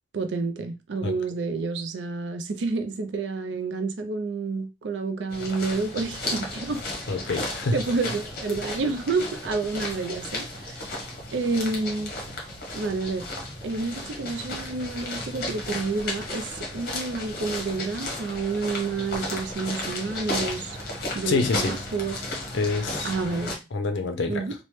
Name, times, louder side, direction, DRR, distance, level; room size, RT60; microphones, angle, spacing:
voice 1, 0.1-6.8 7.3-11.0 11.3-12.1 12.7-13.3 13.6-20.8 21.1-22.1 23.0-23.6 24.3-24.5, right 3 dB, 75° right, 0.4 m, -29 dB
sound 1, 5.3-23.6, left 2 dB, 55° left, 0.9 m, -34 dB
voice 2, 7.1-7.8 21.3-21.8 22.5-23.1 23.7-24.5, left 4 dB, 80° left, 0.5 m, -26 dB
3.0 x 2.0 x 3.1 m
head